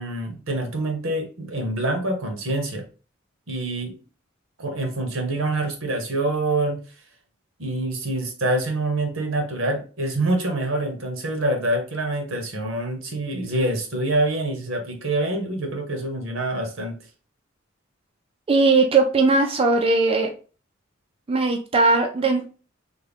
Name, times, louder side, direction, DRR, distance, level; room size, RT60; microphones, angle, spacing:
voice 1, 0.0-2.8 3.5-4.0 4.6-6.8 7.6-17.0, right 2 dB, 75° right, 4 dB, 1.0 m, -26 dB
voice 2, 18.5-20.3 21.3-22.5, right 3 dB, 30° right, 3 dB, 0.4 m, -19 dB
3.5 x 2.2 x 3.4 m, 0.36 s
head